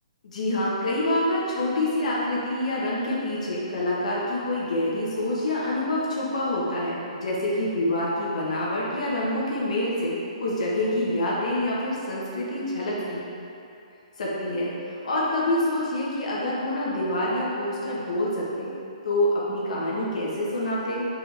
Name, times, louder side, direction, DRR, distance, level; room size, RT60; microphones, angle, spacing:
voice 1, 0.2-13.2 14.2-18.7 19.0-21.0, left 1 dB, 75° left, -6 dB, 1.4 m, -26 dB
6.0 x 4.9 x 3.4 m, 2.7 s
hypercardioid pair, 155°, 4 cm